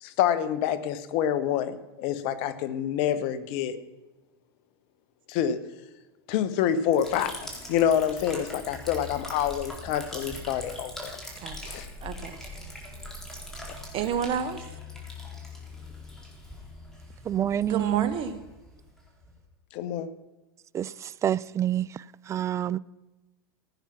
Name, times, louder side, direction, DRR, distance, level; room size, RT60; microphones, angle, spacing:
voice 1, 0.0-3.8 5.3-5.6 6.3-11.2 11.6-11.9 19.7-20.1, left 9 dB, 55° left, 1.2 m, -27 dB
Liquid, 6.9-19.4, left 1 dB, 5° left, 4.1 m, -42 dB
voice 2, 11.4-11.7 12.0-12.5 13.9-14.6 17.7-18.4, right 8 dB, 40° right, 1.5 m, -30 dB
voice 3, 17.3-18.0 20.7-20.8 21.2-21.9 22.3-22.8, right 11 dB, 20° right, 0.4 m, -26 dB
16.0 x 9.2 x 6.0 m
hypercardioid pair, 95°, 13 cm